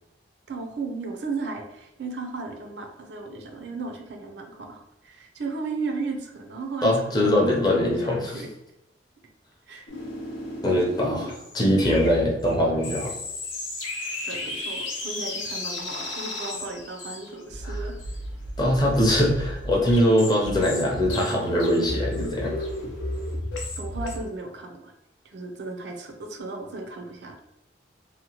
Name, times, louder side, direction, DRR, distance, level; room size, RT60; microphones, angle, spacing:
voice 1, 0.5-8.5 9.7-9.9 14.2-18.0 23.8-24.9 25.2-27.4, right 3 dB, 65° right, 4 dB, 0.5 m, -35 dB
voice 2, 6.8-8.4 10.6-13.1 17.6-17.8 18.6-22.5, equal, 20° left, -2 dB, 0.5 m, -22 dB
sound 1, 9.9-24.2, left 1 dB, 85° left, 0.6 m, -33 dB
2.8 x 2.1 x 2.8 m, 0.86 s
head